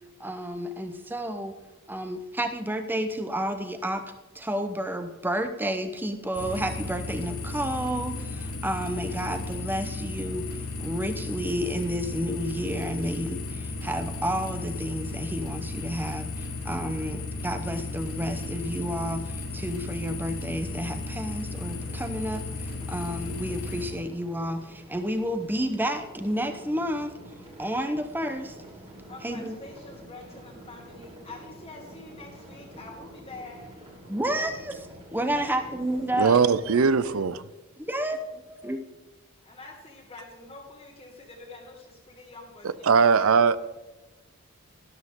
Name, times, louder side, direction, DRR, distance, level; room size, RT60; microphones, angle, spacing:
voice 1, 0.2-1.5 1.9-27.1 27.6-28.5 29.2-29.6 34.1-36.4 37.8-38.9, equal, 10° right, 7 dB, 0.8 m, -31 dB
sound 1, 6.3-23.9, left 3 dB, 80° left, 3.8 m, -35 dB
sound 2, 21.7-37.2, right 1 dB, 25° right, 2.4 m, -47 dB
voice 2, 29.0-33.9 35.2-35.8 36.2-37.2 39.4-43.2, left 3 dB, 25° left, -2 dB, 1.6 m, -46 dB
voice 3, 36.2-37.4 42.6-43.7, right 5 dB, 65° right, 16 dB, 0.5 m, -21 dB
12.5 x 12.5 x 3.7 m, 1.1 s
head